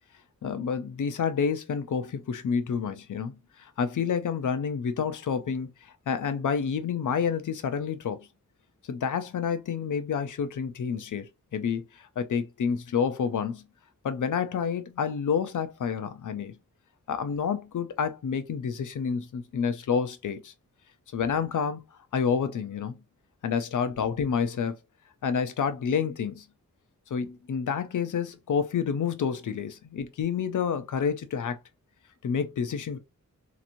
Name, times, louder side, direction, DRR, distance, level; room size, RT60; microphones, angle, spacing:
voice 1, 0.4-8.3 8.9-13.6 14.0-16.5 17.1-20.5 21.1-21.8 22.1-23.0 23.4-24.8 25.2-26.4 27.1-31.6 32.2-33.0, left 6 dB, 85° left, 0.6 m, -29 dB
3.0 x 2.6 x 2.6 m
wide cardioid pair, 90°, 30 cm